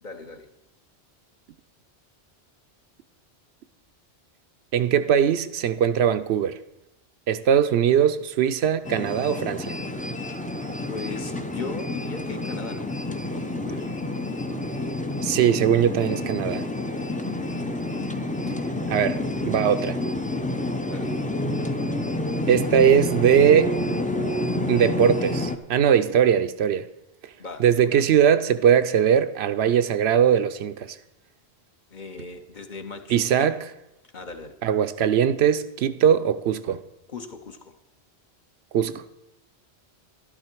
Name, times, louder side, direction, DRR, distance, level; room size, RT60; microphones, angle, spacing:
voice 1, 0.0-0.5 10.9-12.9 13.3-13.9 20.9-21.2 27.4-28.0 31.9-33.5 34.1-34.5 37.1-37.7, left 4 dB, 45° left, 1.0 m, -38 dB
voice 2, 4.7-6.6 7.3-9.8 15.2-16.7 18.5-18.6 18.9-19.2 19.4-20.0 22.5-23.8 24.7-26.9 27.6-31.0 33.1-33.7 34.6-36.8 38.7-39.0, right 8 dB, 75° right, 0.8 m, -20 dB
sound 1, 8.8-25.6, left 1 dB, 10° left, 0.4 m, -29 dB
12.0 x 11.5 x 4.5 m
omnidirectional pair, 1.1 m